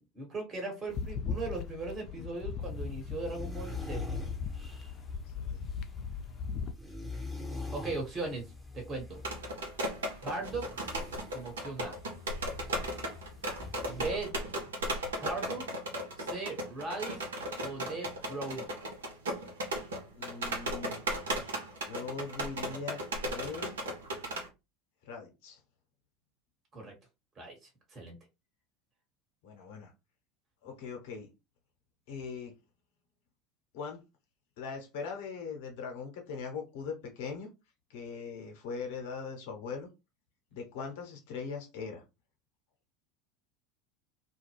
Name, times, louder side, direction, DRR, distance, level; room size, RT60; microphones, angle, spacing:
voice 1, 0.1-4.2 7.7-8.4 8.7-9.2 10.2-10.7 11.3-11.9 13.9-14.3 15.2-15.7 16.2-17.2 17.6-18.7 26.7-26.9 27.4-27.6 27.9-28.2, right 3 dB, 30° right, 1 dB, 1.3 m, -38 dB
sound 1, 0.9-6.7, left 5 dB, 45° left, 0.4 m, -38 dB
sound 2, 2.6-14.1, left 2 dB, 5° left, 0.9 m, -45 dB
voice 2, 5.3-5.7 20.1-21.0 21.8-23.8 25.0-25.6 29.4-29.9 30.6-31.3 32.1-32.5 33.7-34.0 34.6-37.5 37.9-39.9 40.5-42.0, left 5 dB, 65° left, 2 dB, 0.9 m, -40 dB
sound 3, 9.1-24.5, right 1 dB, 75° right, 0.7 m, -36 dB
2.4 x 2.2 x 3.2 m, 0.25 s
figure-of-eight pair, 75°, 0 cm